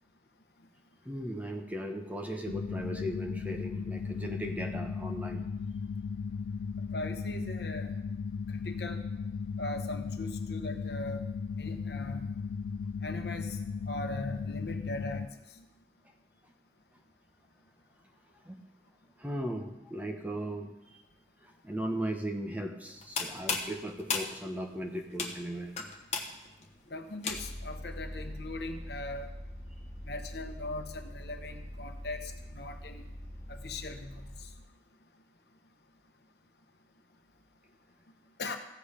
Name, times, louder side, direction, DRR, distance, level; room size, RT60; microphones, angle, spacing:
voice 1, 1.0-5.4 16.4-16.5 18.4-18.6 19.2-21.0 21.4-25.7, equal, 10° right, 2 dB, 1.0 m, -37 dB
sound 1, 2.5-15.3, left 5 dB, 80° left, 0.4 m, -36 dB
voice 2, 6.9-7.9 8.5-9.0 9.6-11.2 11.6-12.2 13.0-13.6 13.9-15.3 15.6-15.7 26.9-29.3 30.0-33.0 33.5-34.3 38.4-38.6, left 2 dB, 60° left, 5 dB, 1.1 m, -40 dB
sound 2, 22.9-27.7, left 5 dB, 40° left, 1.2 m, -36 dB
Vehicle, 27.3-34.6, equal, 20° left, 3.8 m, -43 dB
15.0 x 7.9 x 5.1 m, 0.96 s
head